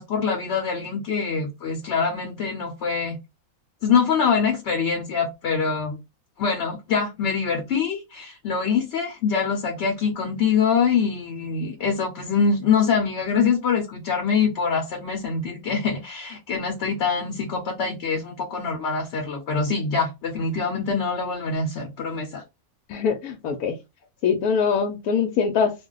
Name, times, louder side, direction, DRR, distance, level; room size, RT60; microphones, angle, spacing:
voice 1, 0.0-3.2 3.8-6.0 6.4-22.4, left 5 dB, 60° left, 0.9 m, -24 dB
voice 2, 22.9-23.8 24.2-25.7, left 6 dB, 85° left, 1.1 m, -23 dB
2.5 x 2.2 x 3.7 m
omnidirectional pair, 1.5 m